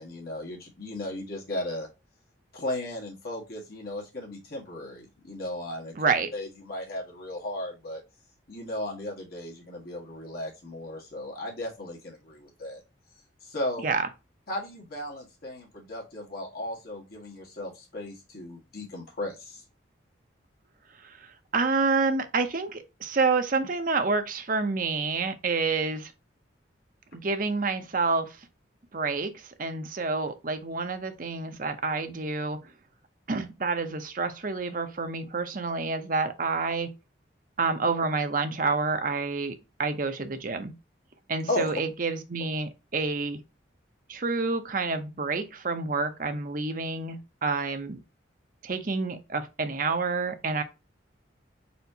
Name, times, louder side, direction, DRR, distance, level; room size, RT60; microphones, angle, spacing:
voice 1, 0.0-1.9 2.5-5.9 6.3-8.0 8.5-12.8 13.4-13.8 14.5-19.6 41.5-41.7, left 1 dB, 50° left, 1.6 m, -35 dB
voice 2, 6.0-6.3 13.8-14.1 21.0-26.1 27.1-28.4 28.9-32.6 33.3-36.9 37.6-40.7 41.3-43.4 44.1-48.0 48.6-50.6, right 4 dB, 45° right, 0.7 m, -28 dB
4.4 x 4.3 x 2.8 m
head